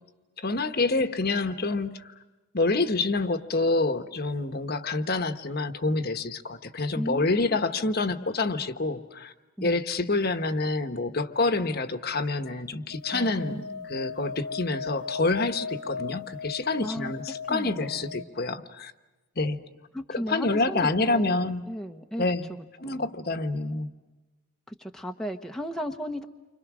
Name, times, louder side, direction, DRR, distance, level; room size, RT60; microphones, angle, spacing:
voice 1, 0.4-2.1 2.5-9.3 9.6-18.9 19.4-19.6 20.1-21.6 22.2-22.5 22.8-23.9, left 3 dB, 45° left, 9 dB, 1.2 m, -27 dB
voice 2, 6.9-7.7 9.6-9.8 13.1-13.9 16.8-17.1 17.5-18.3 19.9-23.1 24.7-26.2, equal, ahead, 3 dB, 1.0 m, -36 dB
sound 1, 12.9-18.2, left 5 dB, 90° left, 1.2 m, -37 dB
30.0 x 25.5 x 6.2 m, 1.1 s
head